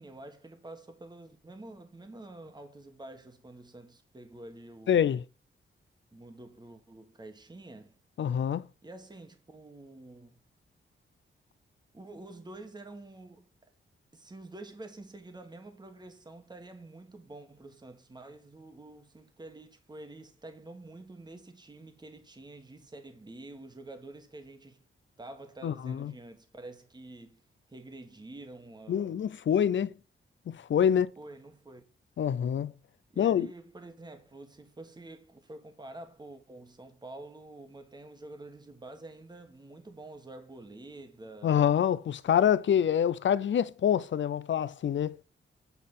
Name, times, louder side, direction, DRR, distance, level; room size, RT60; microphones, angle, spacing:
voice 1, 0.0-5.1 6.1-8.0 8.8-10.4 11.9-13.5 14.1-24.8 25.2-27.4 27.7-29.2 30.8-31.8 33.1-41.7, right 2 dB, 20° right, 1.4 m, -48 dB
voice 2, 4.9-5.2 8.2-8.6 25.6-26.1 28.9-29.9 30.5-31.1 32.2-32.7 33.2-33.5 41.4-45.2, left 9 dB, 65° left, 0.6 m, -26 dB
8.3 x 4.1 x 5.4 m
cardioid pair, 95°, 21 cm